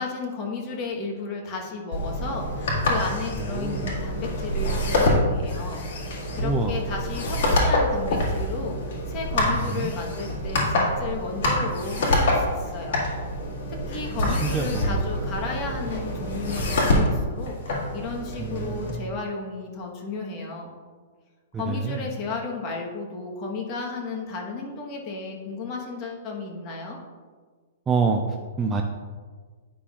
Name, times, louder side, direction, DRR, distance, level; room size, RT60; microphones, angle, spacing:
voice 1, 0.0-5.8 6.3-10.7 11.0-13.1 13.9-20.7 21.6-27.0, left 4 dB, 30° left, 0 dB, 1.1 m, -33 dB
sound 1, 1.9-18.9, left 1 dB, 55° left, 2.0 m, -26 dB
voice 2, 3.5-3.9 6.4-6.8 9.6-9.9 14.3-15.0 18.4-19.2 21.5-22.1 27.9-28.2 28.6-28.8, right 4 dB, 10° right, 3 dB, 0.3 m, -27 dB
9.9 x 5.6 x 2.4 m, 1.5 s
hypercardioid pair, 160°, 0 cm